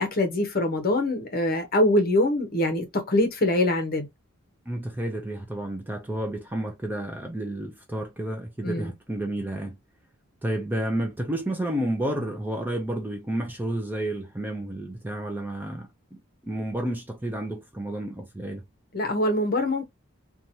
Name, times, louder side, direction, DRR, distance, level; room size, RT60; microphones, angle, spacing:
voice 1, 0.0-4.1 8.6-8.9 18.9-19.8, left 1 dB, 45° left, 0.7 m, -24 dB
voice 2, 4.7-9.8 10.4-18.6, right 1 dB, 10° right, 0.4 m, -31 dB
2.8 x 2.3 x 2.6 m
head